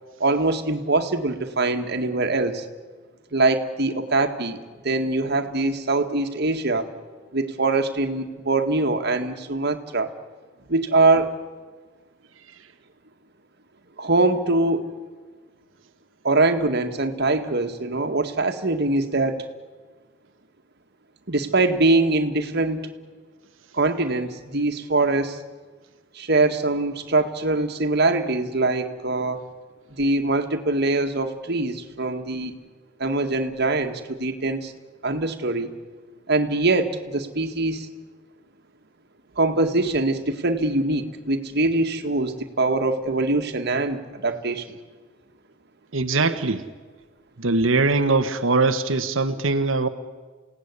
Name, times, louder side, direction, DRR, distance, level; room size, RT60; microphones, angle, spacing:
voice 1, 0.2-2.7 3.3-4.6 4.8-6.9 7.3-10.1 10.7-11.3 14.0-14.9 16.2-19.4 21.3-22.9 23.7-25.4 26.2-29.5 30.0-32.5 33.0-34.7 35.0-35.7 36.3-37.9 39.4-44.8, right 2 dB, 60° right, 6 dB, 2.0 m, -23 dB
voice 2, 45.9-46.6 47.4-49.9, right 3 dB, 80° right, 8 dB, 1.3 m, -21 dB
29.5 x 17.5 x 9.8 m, 1.4 s
head